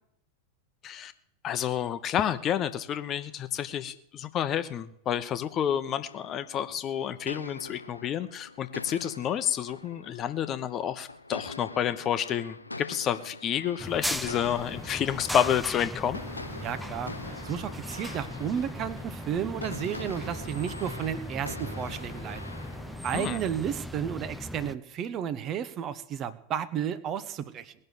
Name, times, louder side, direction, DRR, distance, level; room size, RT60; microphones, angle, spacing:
voice 1, 1.4-16.2 23.1-23.4, left 9 dB, 30° left, 11 dB, 1.0 m, -29 dB
sound 1, 6.0-23.3, left 2 dB, 85° left, 0.6 m, -44 dB
sound 2, 13.8-24.7, equal, ahead, 0.7 m, -38 dB
voice 2, 16.6-17.1 17.4-22.4 23.0-27.7, right 9 dB, 30° right, 15 dB, 1.0 m, -32 dB
19.5 x 6.6 x 9.3 m, 0.78 s
figure-of-eight pair, 90°, 0 cm